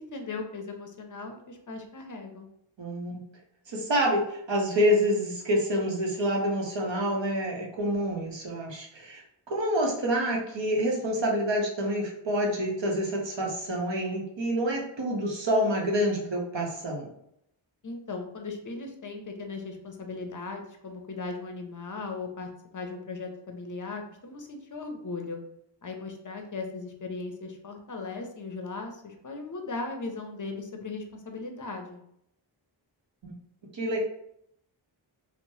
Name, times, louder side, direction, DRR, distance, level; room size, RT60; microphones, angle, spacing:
voice 1, 0.0-2.5 17.8-25.4 25.8-32.0, left 3 dB, 45° left, 4 dB, 0.5 m, -38 dB
voice 2, 2.8-3.2 3.7-9.2 9.5-17.1 33.2-33.3 33.7-34.0, equal, 65° right, -1 dB, 0.8 m, -27 dB
3.0 x 2.0 x 2.7 m, 0.75 s
wide cardioid pair, 60°, 47 cm